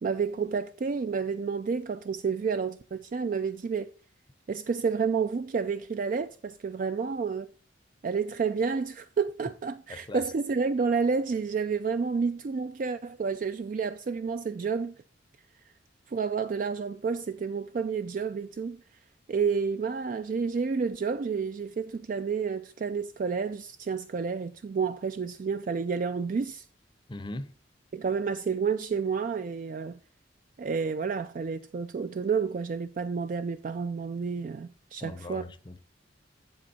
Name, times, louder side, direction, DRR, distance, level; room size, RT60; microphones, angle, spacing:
voice 1, 0.0-3.9 4.5-7.5 8.0-14.9 16.1-18.8 19.3-26.7 27.9-30.0 30.6-35.4, right 5 dB, 45° right, 0.3 m, -30 dB
voice 2, 9.9-10.2 27.1-27.5 35.0-35.8, left 2 dB, 25° left, 0.6 m, -39 dB
7.9 x 7.5 x 4.2 m
head